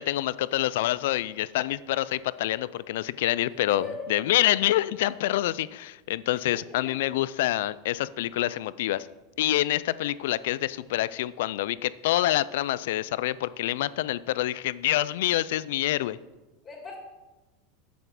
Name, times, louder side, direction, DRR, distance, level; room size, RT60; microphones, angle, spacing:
voice 1, 0.0-9.1 9.4-16.2, left 15 dB, 75° left, 17 dB, 0.4 m, -27 dB
voice 2, 3.7-4.1 6.5-7.0 16.6-17.0, left 2 dB, 25° left, -3 dB, 2.9 m, -39 dB
7.7 x 7.1 x 6.0 m, 1.1 s
hypercardioid pair, 105°, 0 cm